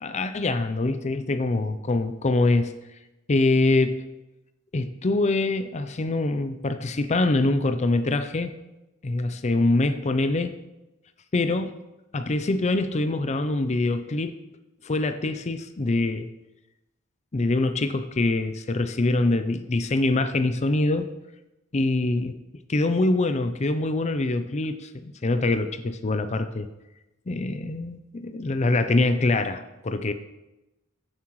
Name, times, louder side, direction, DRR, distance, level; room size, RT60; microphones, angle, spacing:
voice 1, 0.0-2.7 3.3-4.0 4.7-8.5 9.0-10.6 11.3-11.7 12.1-14.4 14.8-16.3 17.3-21.1 21.7-22.4 22.7-26.7 27.3-30.1, left 2 dB, 30° left, 9 dB, 0.5 m, -24 dB
15.5 x 7.5 x 3.1 m, 0.98 s
head